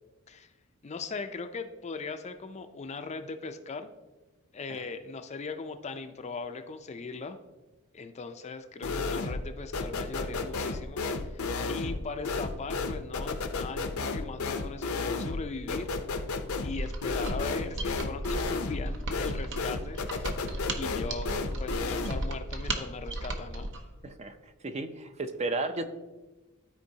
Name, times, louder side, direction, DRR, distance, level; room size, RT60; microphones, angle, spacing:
voice 1, 0.8-3.9 4.5-7.4 7.9-11.4 11.7-15.9 16.6-20.0 20.8-23.7, left 4 dB, 30° left, 8 dB, 0.4 m, -39 dB
sound 1, 8.8-9.5 9.7-22.3, left 3 dB, 75° left, 0.6 m, -33 dB
Mechanisms, 16.7-23.9, right 2 dB, 60° right, 0.8 m, -36 dB
voice 2, 24.0-25.9, right 2 dB, 30° right, 8 dB, 0.5 m, -34 dB
13.5 x 4.5 x 2.8 m, 1.2 s
head